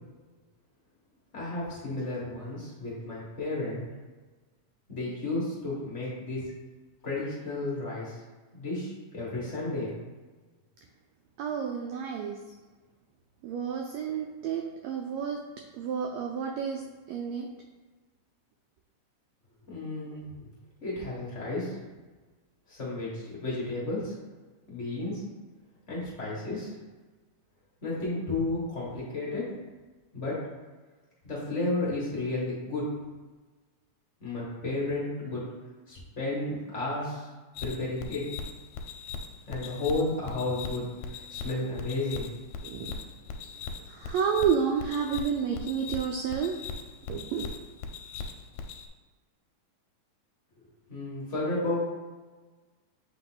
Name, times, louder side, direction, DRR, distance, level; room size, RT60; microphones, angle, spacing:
voice 1, 1.3-3.8 4.9-6.5 7.0-8.2 8.5-9.9 19.7-20.5 20.8-21.8 22.7-24.1 24.7-25.2 25.9-26.7 27.8-29.5 30.1-30.4 31.2-32.9 34.2-35.5 35.9-37.3 37.6-38.3 39.5-40.9 41.1-42.3 50.9-51.8, left 2 dB, 45° left, -6 dB, 0.9 m, -32 dB
voice 2, 11.4-12.4 13.4-15.4 15.7-16.8 17.1-17.5 42.6-43.0 43.9-46.6 47.1-47.5, right 7 dB, 85° right, 2 dB, 1.5 m, -30 dB
sound 1, 37.6-48.9, left 5 dB, 80° left, 1.8 m, -40 dB
6.9 x 3.6 x 3.8 m, 1.3 s
omnidirectional pair, 3.6 m